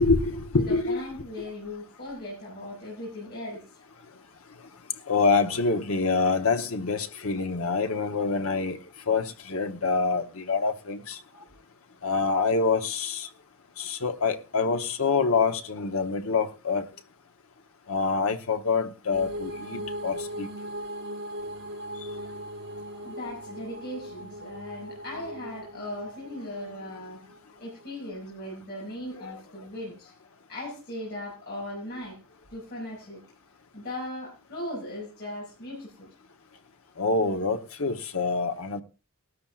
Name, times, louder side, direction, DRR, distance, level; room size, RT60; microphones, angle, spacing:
voice 1, 0.0-1.0 5.1-8.8 9.1-11.2 12.0-13.3 13.8-16.9 17.9-20.5 29.3-29.4 37.0-38.8, left 4 dB, 65° left, 1.0 m, -26 dB
voice 2, 0.6-3.7 23.0-27.2 27.6-30.1 30.5-32.2 32.5-33.2 33.7-36.1, left 1 dB, 50° left, 6.1 m, -38 dB
sound 1, 19.1-27.8, equal, 55° right, 4.6 m, -39 dB
17.0 x 13.0 x 2.4 m
head